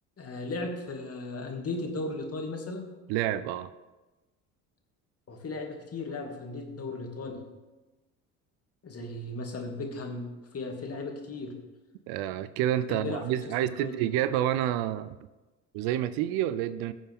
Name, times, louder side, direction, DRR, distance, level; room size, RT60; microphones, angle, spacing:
voice 1, 0.2-2.9 5.3-7.4 8.8-11.5 12.9-14.0, left 2 dB, 40° left, 2 dB, 2.6 m, -36 dB
voice 2, 3.1-3.7 12.1-15.2 15.7-16.9, right 12 dB, 70° right, 15 dB, 0.7 m, -28 dB
19.0 x 7.1 x 3.7 m, 1.1 s
hypercardioid pair, 65°, 39 cm